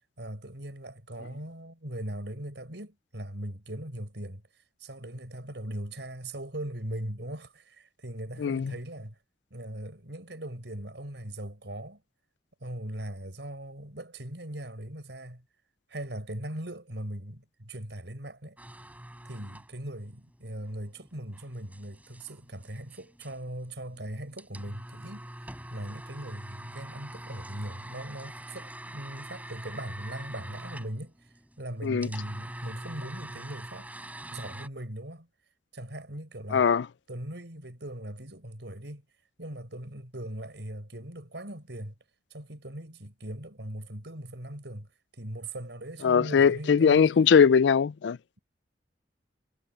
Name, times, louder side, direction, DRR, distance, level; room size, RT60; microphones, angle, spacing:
voice 1, 0.0-4.4 4.8-9.2 9.5-12.0 12.6-15.4 15.9-18.6 19.2-25.3 25.7-31.2 31.6-33.9 34.3-35.3 35.7-36.7 37.1-39.0 39.4-41.9 42.3-47.1, right 1 dB, 75° right, 5.5 m, -39 dB
voice 2, 8.4-8.7 31.8-32.1 36.5-36.9 46.0-48.2, left 6 dB, 80° left, 0.4 m, -21 dB
sound 1, 18.6-34.7, right 1 dB, 10° right, 5.6 m, -45 dB
head